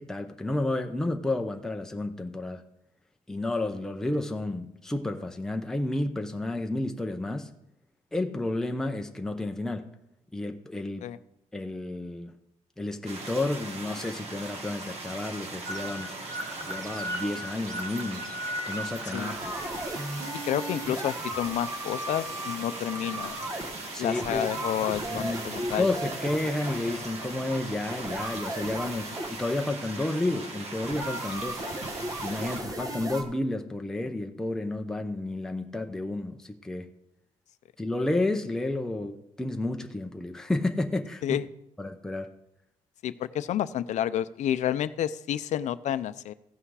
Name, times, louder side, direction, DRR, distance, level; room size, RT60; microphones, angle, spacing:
voice 1, 0.0-2.6 3.3-7.5 8.1-9.9 10.3-11.1 11.5-12.4 12.8-16.2 16.6-18.3 18.6-19.3 23.9-24.5 24.8-31.6 32.2-36.9 37.8-41.4 41.8-42.3, left 2 dB, 5° left, 0.7 m, -31 dB
sound 1, 13.0-32.6, right 2 dB, 50° right, 1.8 m, -40 dB
sound 2, 15.6-33.2, right 1 dB, 25° right, 1.2 m, -36 dB
voice 2, 20.5-23.4 24.0-25.9 41.2-41.5 43.0-46.3, left 11 dB, 60° left, 0.5 m, -30 dB
15.5 x 5.8 x 4.8 m
cardioid pair, 145°, 14 cm